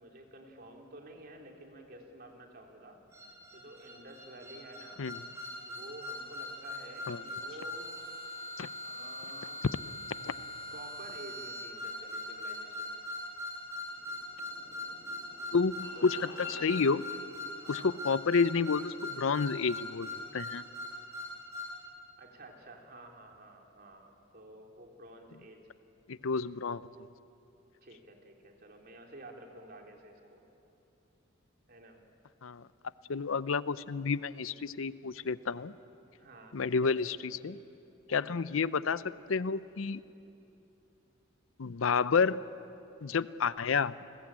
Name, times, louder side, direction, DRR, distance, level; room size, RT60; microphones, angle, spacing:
voice 1, 0.0-3.0 3.5-5.1 5.7-8.0 8.8-9.6 10.7-13.0 16.0-16.1 17.5-17.9 22.2-25.7 27.8-30.4 31.7-32.0 36.2-37.1 38.1-38.5, right 1 dB, 45° right, 1 dB, 3.3 m, -51 dB
sound 1, 3.1-21.8, left 1 dB, 15° right, 6.0 m, -41 dB
sound 2, 13.6-16.7, left 3 dB, 55° left, 5.9 m, -49 dB
voice 2, 15.5-16.2 16.5-17.0 17.7-20.6 26.1-27.1 32.4-32.7 33.1-35.7 36.5-37.6 38.1-39.0 39.3-40.0 41.6-42.4 43.0-44.0, left 5 dB, 75° left, 16 dB, 0.6 m, -30 dB
29.5 x 20.5 x 8.8 m, 2.8 s
head